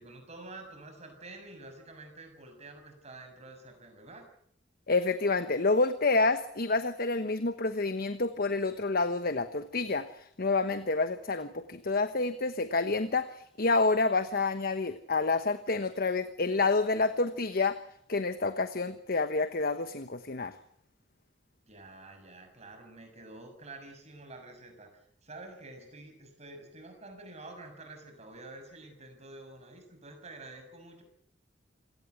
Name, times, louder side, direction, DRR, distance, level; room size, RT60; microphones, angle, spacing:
voice 1, 0.0-4.2 21.6-31.0, right 2 dB, 35° right, 5 dB, 6.7 m, -48 dB
voice 2, 4.9-17.8 18.1-20.5, left 3 dB, 50° left, 10 dB, 1.2 m, -28 dB
27.5 x 17.5 x 8.2 m, 0.68 s
head